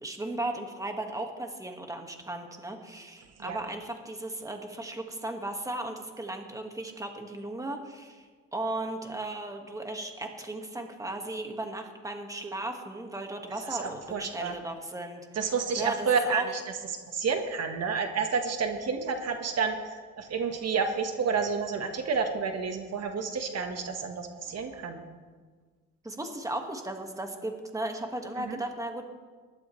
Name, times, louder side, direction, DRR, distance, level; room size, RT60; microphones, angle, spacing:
voice 1, 0.0-15.2 15.8-16.5 26.0-29.0, right 1 dB, 10° right, 4 dB, 1.7 m, -36 dB
voice 2, 13.7-14.5 15.3-16.5 17.1-25.0 28.4-28.6, right 5 dB, 55° right, 5 dB, 1.4 m, -30 dB
20.0 x 11.5 x 3.2 m, 1.5 s
cardioid pair, 90°, 30 cm